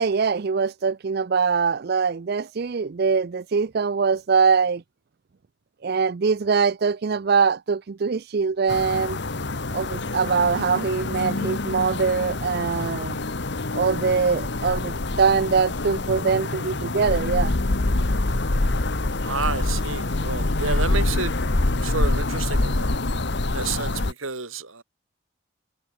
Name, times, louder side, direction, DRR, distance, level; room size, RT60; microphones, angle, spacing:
voice 1, 0.0-4.8 5.8-9.2 9.7-13.2 13.7-17.6, right 5 dB, 50° right, 0.4 m, -23 dB
sound 1, 8.7-24.1, left 2 dB, 55° left, 1.2 m, -26 dB
voice 2, 19.2-21.3 21.8-22.9 23.5-24.8, right 4 dB, 80° right, 3.9 m, -30 dB
head